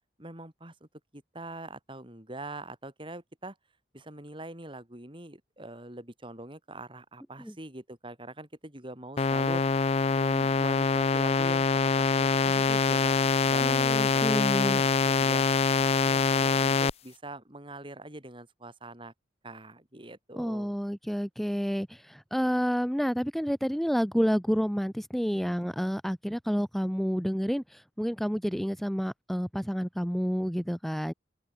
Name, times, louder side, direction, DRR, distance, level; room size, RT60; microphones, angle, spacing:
voice 1, 0.2-0.9 1.1-3.5 3.9-9.7 10.0-13.1 13.5-15.5 15.8-19.1 19.4-20.8, right 2 dB, 30° right, 5.0 m, -43 dB
sound 1, 9.2-16.9, left 4 dB, 35° left, 0.4 m, -24 dB
voice 2, 13.6-14.8 20.4-31.1, equal, ahead, 2.8 m, -29 dB
head